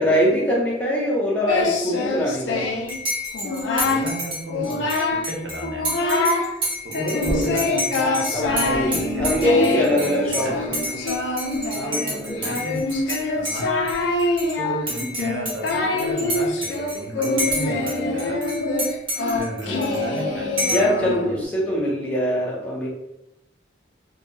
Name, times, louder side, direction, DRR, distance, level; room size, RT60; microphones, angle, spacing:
voice 1, 0.0-2.7 7.0-7.7 8.3-10.5 10.9-11.0 11.7-12.6 19.7-19.8 20.7-22.9, equal, 5° left, -5 dB, 0.5 m, -23 dB
Singing, 1.5-3.0 3.3-4.1 4.5-5.3 5.6-6.5 6.9-21.4, left 2 dB, 85° left, 0.4 m, -25 dB
Dishes pots and pans / Cutlery silverware / Chink clink, 2.9-13.2 13.5-14.5 14.9-17.9 18.2-20.2 20.6-21.0, equal, 25° right, 0.9 m, -29 dB
voice 2, 3.8-5.9 6.8-9.9 10.3-10.6 12.4-12.9 13.3-13.9 14.2-18.5 19.3-21.4 21.7-21.8, right 1 dB, 80° right, 0 dB, 0.6 m, -33 dB
sound 1, 8.2-11.6, equal, 65° left, 1.0 m, -40 dB
2.7 x 2.6 x 2.2 m, 0.85 s
head